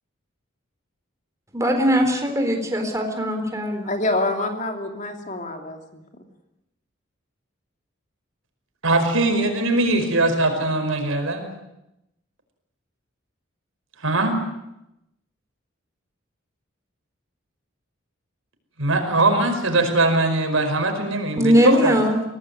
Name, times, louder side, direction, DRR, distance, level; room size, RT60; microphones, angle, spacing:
voice 1, 1.5-3.9 21.4-22.2, equal, 15° right, 4 dB, 3.8 m, -20 dB
voice 2, 3.9-6.0, left 2 dB, 35° left, 4 dB, 2.9 m, -26 dB
voice 3, 8.8-11.5 14.0-14.4 18.8-22.0, right 2 dB, 85° right, 5 dB, 5.2 m, -21 dB
23.5 x 18.0 x 9.7 m, 0.88 s
head